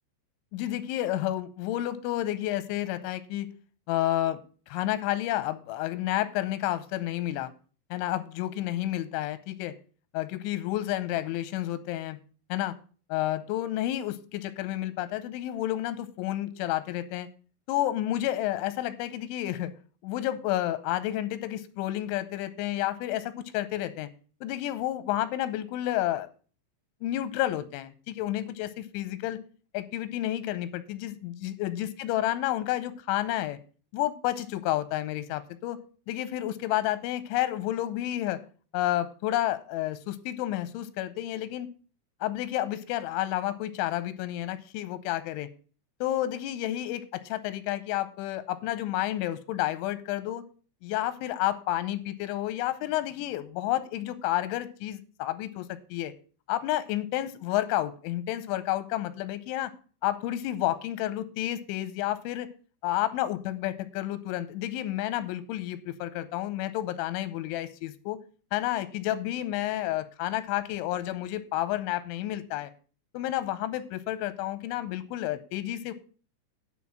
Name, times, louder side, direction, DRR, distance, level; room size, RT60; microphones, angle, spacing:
voice 1, 0.5-3.5 3.9-4.4 4.7-7.5 7.9-9.7 10.1-12.2 12.5-12.8 13.1-17.3 17.7-19.7 20.0-24.1 24.4-26.3 27.0-29.4 29.7-33.6 33.9-35.8 36.1-38.4 38.7-41.7 42.2-45.5 46.0-50.4 50.8-56.1 56.5-59.7 60.0-62.5 62.8-68.2 68.5-72.7 73.1-75.9, left 14 dB, 90° left, 13 dB, 3.1 m, -30 dB
10.5 x 4.1 x 7.3 m, 0.39 s
omnidirectional pair, 5.3 m